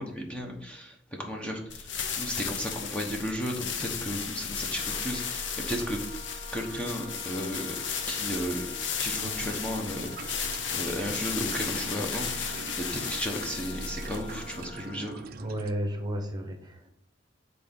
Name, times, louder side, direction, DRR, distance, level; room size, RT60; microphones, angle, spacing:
voice 1, 0.0-6.0 6.5-7.8 8.1-8.7 9.0-15.3, equal, 5° left, 0 dB, 1.0 m, -34 dB
sound 1, 1.7-14.8, left 6 dB, 70° left, 1.0 m, -34 dB
Wind instrument woodwind instrument, 4.7-15.3, left 2 dB, 30° left, 2.9 m, -48 dB
sound 2, 9.1-15.7, right 4 dB, 55° right, 0.5 m, -44 dB
voice 2, 15.4-16.9, equal, 20° right, 4 dB, 1.1 m, -33 dB
8.4 x 4.1 x 5.3 m, 0.70 s
head